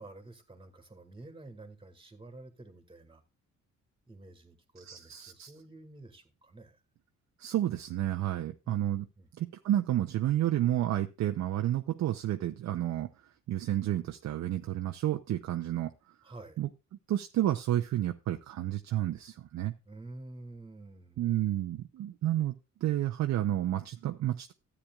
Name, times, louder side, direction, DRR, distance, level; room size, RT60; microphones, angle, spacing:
voice 1, 0.0-3.2 4.1-6.8 8.6-9.3 16.2-16.6 19.9-21.2, right 2 dB, 15° right, 1.9 m, -50 dB
voice 2, 4.8-5.5 7.4-9.1 9.4-13.1 13.5-15.9 16.6-16.7 17.1-19.7 21.2-22.5 22.8-24.5, right 13 dB, 65° right, 0.6 m, -30 dB
13.0 x 8.6 x 2.3 m
cardioid pair, 90°, 30 cm